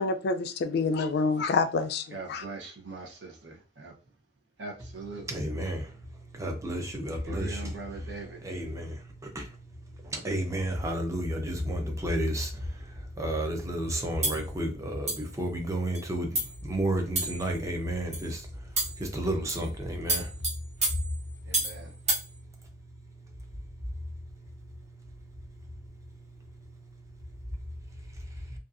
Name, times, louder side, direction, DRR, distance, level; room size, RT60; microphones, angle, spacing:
voice 1, 0.0-2.4, left 4 dB, 60° left, 0.3 m, -27 dB
voice 2, 2.1-3.9 4.6-5.4 7.2-8.4 21.5-21.9, right 3 dB, 70° right, 0.7 m, -41 dB
voice 3, 5.3-5.8 6.4-7.7 8.4-9.0 9.3-9.4 10.1-12.5 13.2-16.3 16.6-18.4 19.0-20.3, right 1 dB, 15° right, 0.5 m, -31 dB
sound 1, 14.2-14.4 15.1-15.3 15.9-16.0 16.3-16.6 17.2-17.5 18.1-18.3 18.8-19.0 19.5-19.7 20.1-21.8 22.1-22.3, right 2 dB, 40° right, 1.1 m, -30 dB
2.6 x 2.3 x 2.4 m
head